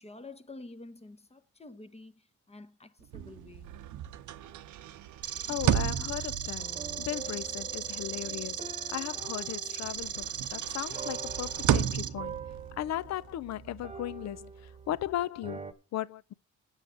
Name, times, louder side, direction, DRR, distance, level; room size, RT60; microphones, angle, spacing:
voice 1, 0.0-3.7, left 2 dB, 20° left, 0.9 m, -49 dB
sound 1, 3.0-9.5 9.8-15.2, right 10 dB, 75° right, 0.8 m, -35 dB
sound 2, 5.2-12.1, right 8 dB, 55° right, 0.9 m, -37 dB
voice 2, 5.5-12.4 12.8-16.3, left 13 dB, 60° left, 0.6 m, -37 dB
sound 3, 6.6-15.0 15.4-15.7, right 5 dB, 20° right, 1.1 m, -45 dB
8.2 x 6.6 x 7.7 m
cardioid pair, 90°, 30 cm